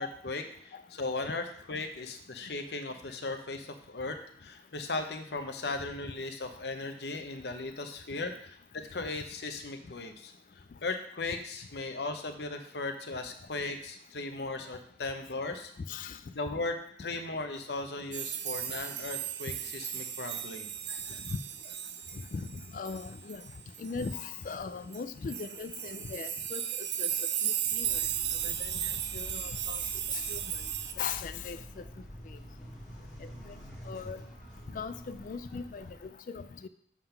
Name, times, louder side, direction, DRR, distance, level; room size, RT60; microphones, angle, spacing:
voice 1, 0.0-10.3 10.8-15.7 16.3-20.7, left 3 dB, 70° left, 6 dB, 0.8 m, -37 dB
sound 1, 18.1-24.3 24.9-25.0 25.3-30.9, right 10 dB, 80° right, 0.5 m, -35 dB
voice 2, 22.3-23.4 23.8-27.1 27.4-28.0 28.4-29.8 30.1-30.4 31.0-31.8 33.5-33.6 33.9-34.2 34.7-36.7, left 5 dB, 50° left, 12 dB, 0.3 m, -39 dB
sound 2, 27.8-36.1, equal, 5° left, 2.0 m, -47 dB
7.2 x 3.8 x 5.7 m, 0.63 s
head